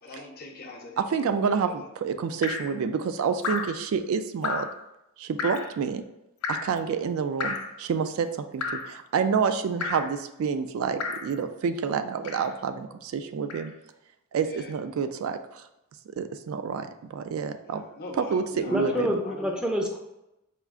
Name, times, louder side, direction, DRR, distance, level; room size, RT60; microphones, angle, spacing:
voice 1, 0.0-1.2 1.5-1.9 14.4-14.7 17.6-19.6, left 2 dB, 45° left, 1 dB, 0.7 m, -43 dB
voice 2, 1.0-4.7 5.2-6.0 6.5-8.3 8.5-13.7 14.3-15.7 16.1-17.8 18.3-19.2, right 6 dB, 65° right, 9 dB, 0.3 m, -28 dB
Drip, 2.4-2.8 3.4-3.8 4.4-4.8 5.4-5.7 6.4-6.8 7.4-7.8 8.6-8.9 9.8-10.1 11.0-11.3 12.2-12.6 13.5-13.7, left 4 dB, 85° left, 0.5 m, -32 dB
voice 3, 18.7-20.0, equal, 5° right, 1 dB, 0.5 m, -27 dB
4.4 x 2.4 x 3.6 m, 0.90 s
head